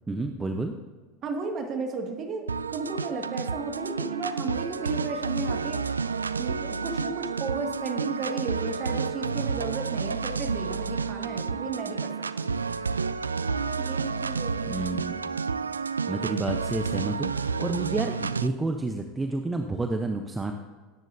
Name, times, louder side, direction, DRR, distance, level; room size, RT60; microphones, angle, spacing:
voice 1, 0.1-0.7 14.7-15.3 16.1-20.5, right 2 dB, 15° right, 5 dB, 0.8 m, -30 dB
voice 2, 1.2-2.5 2.7-6.0 6.4-12.6 13.5-14.9, right 4 dB, 40° right, 3 dB, 2.1 m, -34 dB
sound 1, 2.5-18.5, right 5 dB, 90° right, 0.3 m, -30 dB
19.5 x 10.5 x 2.7 m, 1.4 s
hypercardioid pair, 80°, 0 cm